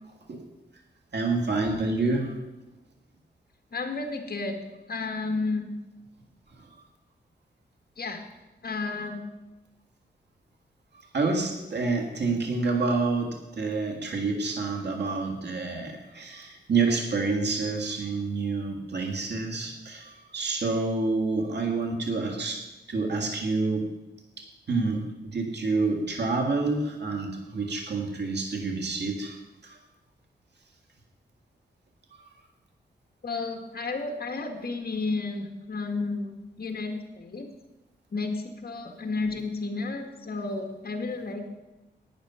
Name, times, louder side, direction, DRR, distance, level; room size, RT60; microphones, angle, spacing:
voice 1, 1.1-2.4 6.6-6.7 10.9-22.6 22.9-23.9 24.4-29.4 29.6-29.8, right 3 dB, 65° right, 2 dB, 2.0 m, -28 dB
voice 2, 3.7-4.6 4.9-5.7 8.0-8.2 8.6-9.2 33.2-37.4 38.1-38.4 38.6-41.5, left 3 dB, 55° left, 5 dB, 1.9 m, -32 dB
11.5 x 8.9 x 5.7 m, 1.0 s
wide cardioid pair, 95°, 19 cm